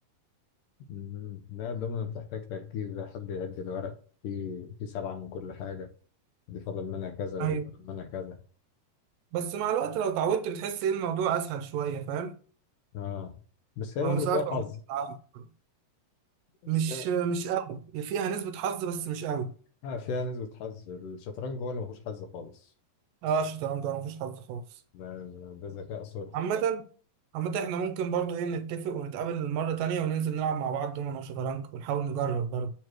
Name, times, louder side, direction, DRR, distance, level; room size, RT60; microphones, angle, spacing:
voice 1, 0.9-3.9 4.2-5.9 6.5-7.6 7.8-8.4 12.9-13.4 13.8-14.7 16.7-17.1 19.8-22.7 24.9-26.4, left 5 dB, 80° left, 2.0 m, -36 dB
voice 2, 9.3-12.4 14.0-14.6 14.9-15.5 16.7-19.5 23.2-24.6 26.3-26.8 27.3-32.7, right 7 dB, 80° right, 2.1 m, -30 dB
7.3 x 3.1 x 5.9 m
omnidirectional pair, 4.1 m